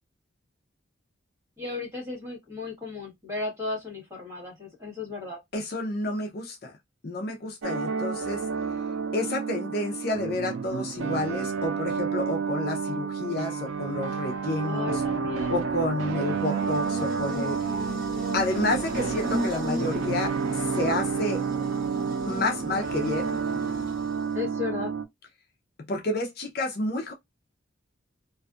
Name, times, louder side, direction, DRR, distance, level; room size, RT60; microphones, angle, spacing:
voice 1, 1.6-5.4 14.6-15.6 16.2-16.3 24.3-24.9, left 4 dB, 15° right, 1.2 m, -35 dB
voice 2, 5.5-6.7 7.0-8.5 9.1-15.0 15.5-17.6 18.3-21.4 22.3-23.3 25.9-27.1, left 2 dB, 50° left, 0.5 m, -30 dB
sound 1, 7.6-25.0, right 6 dB, 85° right, 0.4 m, -30 dB
Buzz, 16.3-24.4, equal, 40° right, 1.3 m, -36 dB
2.5 x 2.4 x 2.3 m
head